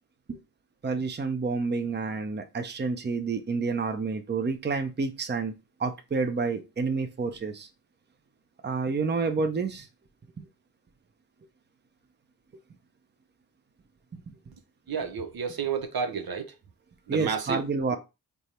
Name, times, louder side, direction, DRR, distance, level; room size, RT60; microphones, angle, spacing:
voice 1, 0.8-5.5 5.8-7.7 8.6-9.9 10.4-10.5 17.1-18.0, right 4 dB, 30° right, 0.6 m, -29 dB
voice 2, 14.9-16.5 17.1-17.6, right 6 dB, 70° right, 0.7 m, -30 dB
3.4 x 2.1 x 4.2 m
cardioid pair, 60°, 38 cm